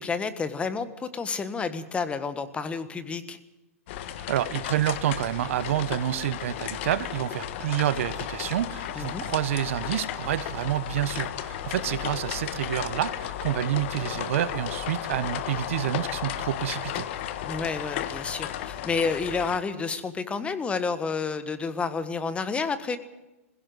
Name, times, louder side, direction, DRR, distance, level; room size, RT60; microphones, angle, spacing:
voice 1, 0.0-3.4 8.9-9.2 11.9-12.0 17.4-23.0, left 5 dB, 15° left, 12 dB, 1.4 m, -30 dB
sound 1, 3.9-19.6, left 11 dB, 55° left, 1.5 m, -34 dB
voice 2, 4.3-17.1, right 12 dB, 60° right, 15 dB, 1.0 m, -28 dB
20.5 x 16.5 x 7.9 m, 1.0 s
hypercardioid pair, 125°, 8 cm